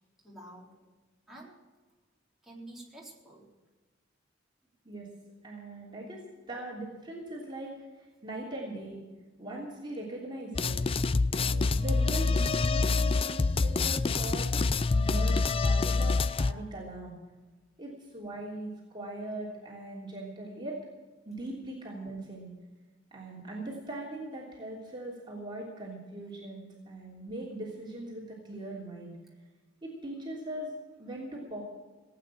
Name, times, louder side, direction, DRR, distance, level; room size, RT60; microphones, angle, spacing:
voice 1, 0.2-0.7 1.3-1.6 2.4-3.5 13.0-13.1, right 1 dB, ahead, -5 dB, 4.0 m, -49 dB
voice 2, 5.4-6.2 6.5-9.0 9.4-10.8 11.3-14.5 14.9-17.2 17.8-20.8 21.2-22.5 23.1-29.2 29.8-31.6, right 1 dB, 25° right, -4 dB, 3.1 m, -40 dB
sound 1, 10.5-16.5, left 3 dB, 30° left, 0.4 m, -26 dB
18.5 x 9.0 x 7.4 m, 1.3 s
head